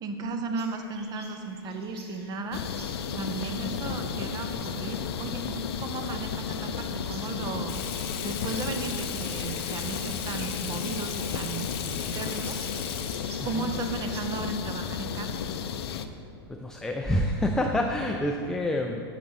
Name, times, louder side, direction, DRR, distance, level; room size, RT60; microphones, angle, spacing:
voice 1, 0.0-2.6 3.1-7.7 8.2-11.7 12.1-12.6 13.4-15.3, right 3 dB, 30° right, 6 dB, 0.7 m, -35 dB
sound 1, 0.5-14.4, right 2 dB, 80° right, 1.2 m, -51 dB
sound 2, 2.5-16.1, left 7 dB, 75° left, 0.4 m, -33 dB
Water tap faucet / Sink (filling or washing), 7.7-13.6, left 8 dB, 50° left, 0.8 m, -38 dB
voice 2, 15.7-16.0 16.5-19.0, left 1 dB, 5° left, 2 dB, 0.3 m, -28 dB
6.8 x 6.5 x 4.0 m, 2.7 s
hypercardioid pair, 110°, 13 cm